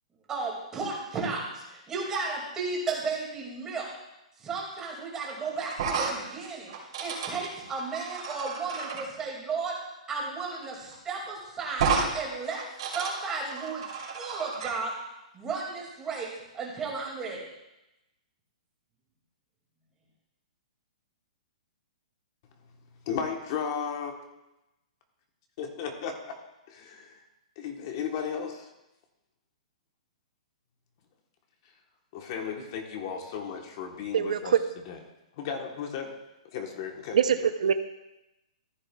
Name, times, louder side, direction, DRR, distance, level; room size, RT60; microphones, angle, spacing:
voice 1, 0.3-3.9 4.4-9.7 10.1-12.6 12.9-13.8 14.1-14.9 15.3-17.4, right 4 dB, 15° right, -2 dB, 2.2 m, -34 dB
sound 1, 5.7-9.0 10.5-10.6 10.9-11.0 11.7-12.1 12.4-14.7, right 5 dB, 50° right, 2.9 m, -32 dB
voice 2, 23.1-24.1 25.6-26.4 26.7-27.2 27.6-28.7 32.1-34.5 34.9-35.0 35.4-36.2 36.5-37.5, left 7 dB, 35° left, 4 dB, 1.1 m, -35 dB
voice 3, 34.1-34.6 37.1-37.7, right 8 dB, 75° right, 10 dB, 0.6 m, -23 dB
14.5 x 9.8 x 2.3 m, 0.94 s
hypercardioid pair, 165°, 4 cm